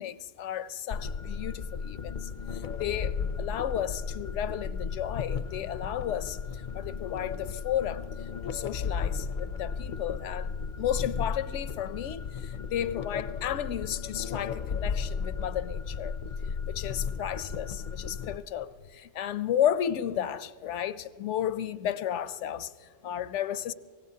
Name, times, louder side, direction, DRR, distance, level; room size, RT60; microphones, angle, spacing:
voice 1, 0.0-8.1 8.4-10.5 10.8-16.2 16.7-23.7, left 10 dB, 80° left, 0.9 m, -33 dB
sound 1, 0.9-18.4, left 6 dB, 55° left, 0.6 m, -35 dB
23.5 x 18.5 x 2.8 m
omnidirectional pair, 1.2 m